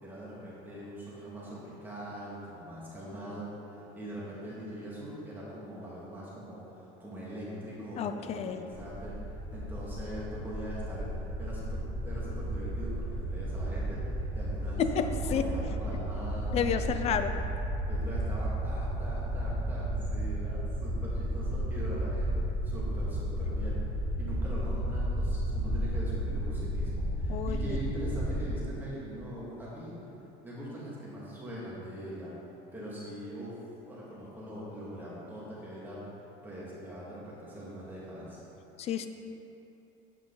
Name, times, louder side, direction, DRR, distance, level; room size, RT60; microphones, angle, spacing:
voice 1, 0.0-16.7 17.0-17.2 17.9-22.3 22.6-23.8 24.2-30.0 30.4-32.4 32.7-33.6 33.8-36.0 36.4-38.4, equal, 10° right, -8 dB, 2.1 m, -42 dB
voice 2, 8.0-8.6 14.8-15.5 16.5-17.3 27.3-27.8 38.8-39.1, left 7 dB, 35° left, 9 dB, 0.5 m, -30 dB
sound 1, 8.7-28.4, right 1 dB, 25° right, 0.9 m, -33 dB
9.2 x 8.4 x 4.0 m, 2.9 s
cardioid pair, 160°, 20 cm